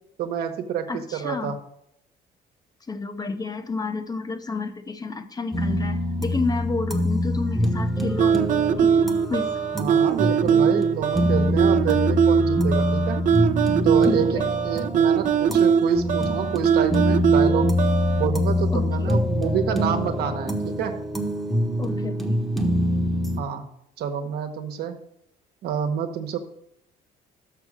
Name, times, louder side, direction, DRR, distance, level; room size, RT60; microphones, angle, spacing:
voice 1, 0.2-1.6 9.8-13.2 13.8-17.7 18.1-20.9 23.4-23.7 24.0-25.0 25.6-26.4, right 8 dB, 70° right, 6 dB, 1.1 m, -28 dB
voice 2, 0.9-1.6 2.9-9.5 14.0-14.5 18.7-19.3 21.8-22.4, left 3 dB, 20° left, 9 dB, 0.6 m, -31 dB
sound 1, 5.5-23.4, left 1 dB, ahead, 0.9 m, -25 dB
sound 2, 8.2-18.3, right 7 dB, 50° right, 0.6 m, -21 dB
6.6 x 6.0 x 6.5 m, 0.77 s
cardioid pair, 110°, 17 cm